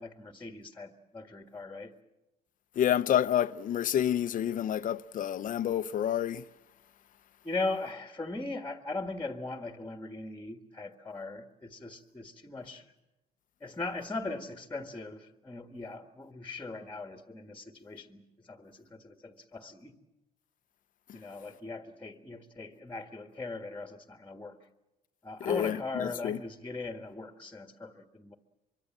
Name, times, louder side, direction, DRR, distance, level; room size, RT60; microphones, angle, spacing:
voice 1, 0.0-2.0 7.4-12.9 13.6-19.9 21.1-24.6 25.2-28.3, left 3 dB, 10° left, 1.7 m, -39 dB
voice 2, 2.8-6.4 25.4-26.4, left 10 dB, 50° left, 0.8 m, -29 dB
24.5 x 23.5 x 7.4 m
cardioid pair, 110°, 17 cm